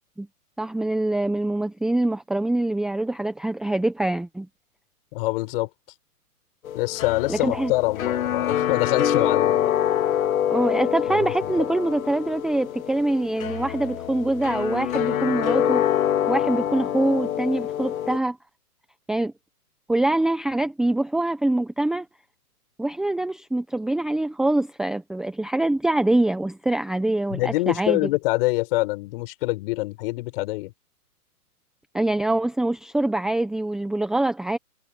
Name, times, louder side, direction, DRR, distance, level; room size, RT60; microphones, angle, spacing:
voice 1, 0.6-4.5 7.3-7.7 10.5-15.8 16.3-18.4 19.1-19.3 19.9-22.0 22.8-28.1 31.9-34.6, right 2 dB, ahead, 0.9 m, -24 dB
voice 2, 5.1-5.7 6.7-9.7 11.1-11.6 27.3-30.7, left 21 dB, 35° left, 5.8 m, -25 dB
sound 1, 6.6-18.2, left 10 dB, 60° left, 2.4 m, -25 dB
hypercardioid pair, 145°, 46 cm